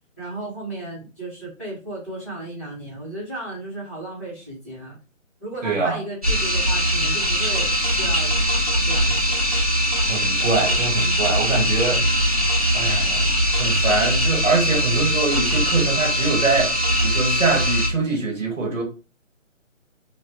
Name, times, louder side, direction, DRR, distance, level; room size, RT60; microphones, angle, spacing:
voice 1, 0.2-5.0 5.4-8.3 8.8-9.5, right 1 dB, 10° left, 1.4 m, -34 dB
voice 2, 5.6-6.0 10.1-12.0 12.7-13.3 13.6-16.7 17.0-18.8, right 3 dB, 70° right, 1.5 m, -23 dB
sound 1, 6.2-17.9, equal, 30° right, 1.0 m, -21 dB
3.1 x 2.8 x 2.9 m
hypercardioid pair, 175°, 39 cm